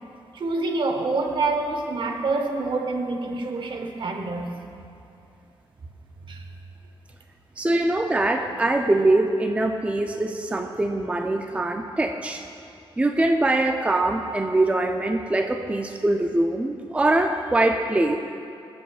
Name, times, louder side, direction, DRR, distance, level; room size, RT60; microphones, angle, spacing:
voice 1, 0.3-4.6 6.3-6.4, right 3 dB, 55° right, 4 dB, 1.0 m, -26 dB
voice 2, 7.6-12.4 13.0-18.2, right 2 dB, 15° right, 4 dB, 0.4 m, -23 dB
20.0 x 7.8 x 2.4 m, 2.6 s
cardioid pair, 100°, 10 cm